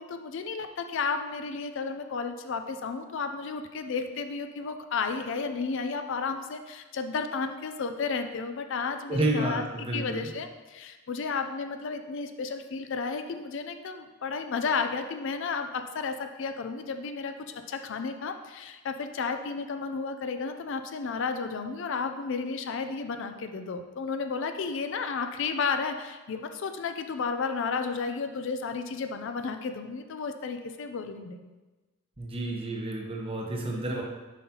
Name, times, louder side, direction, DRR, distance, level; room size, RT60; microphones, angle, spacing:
voice 1, 0.0-9.6 9.9-31.5, left 5 dB, 60° left, 7 dB, 0.4 m, -32 dB
voice 2, 9.1-10.3 32.2-34.0, right 1 dB, 25° right, 0 dB, 0.9 m, -30 dB
7.1 x 5.6 x 2.9 m, 1.2 s
head